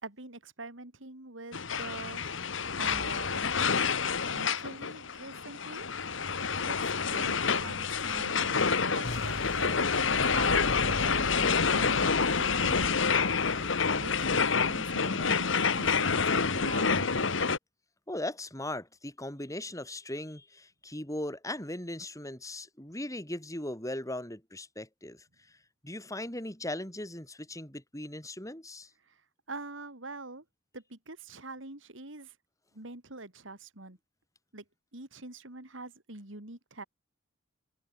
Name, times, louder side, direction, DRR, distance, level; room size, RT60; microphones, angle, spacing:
voice 1, 0.0-3.5 4.3-5.9 6.7-6.8 7.1-12.9 13.5-13.6 13.9-15.5 15.7-17.1 29.1-29.2 29.5-30.4 30.7-32.3 32.7-34.0 34.5-34.6 34.9-36.8, right 2 dB, 75° right, 3.7 m, -44 dB
sound 1, 1.5-17.6, left 5 dB, 70° left, 1.5 m, -28 dB
sound 2, 9.0-16.0, left 1 dB, 50° left, 2.3 m, -42 dB
voice 2, 18.1-25.6 25.8-28.9, left 1 dB, 15° left, 6.3 m, -38 dB
head